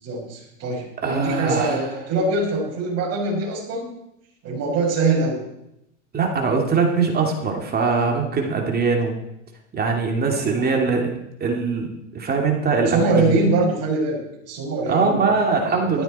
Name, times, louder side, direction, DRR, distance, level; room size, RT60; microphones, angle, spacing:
voice 1, 0.0-3.9 4.4-5.4 10.4-10.9 12.9-15.3 15.7-16.0, right 3 dB, 40° right, -2 dB, 6.4 m, -23 dB
voice 2, 1.0-1.8 6.1-9.1 9.7-11.1 11.4-13.4 14.9-16.0, right 4 dB, 25° right, 2 dB, 2.7 m, -22 dB
13.5 x 13.5 x 4.4 m, 0.83 s
hypercardioid pair, 105°, 39 cm